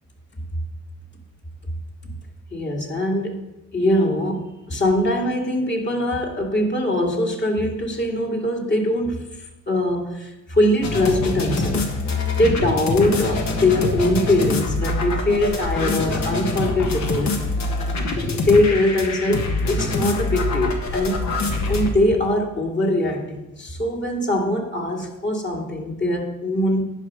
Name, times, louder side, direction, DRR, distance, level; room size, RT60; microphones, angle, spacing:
voice 1, 2.5-3.4 3.7-11.8 12.3-17.4 18.3-21.2 21.7-26.8, left 1 dB, 35° left, 0 dB, 2.3 m, -22 dB
sound 1, 10.8-21.9, left 2 dB, 70° left, 1.5 m, -24 dB
10.0 x 5.3 x 6.3 m, 0.96 s
cardioid pair, 90°, 30 cm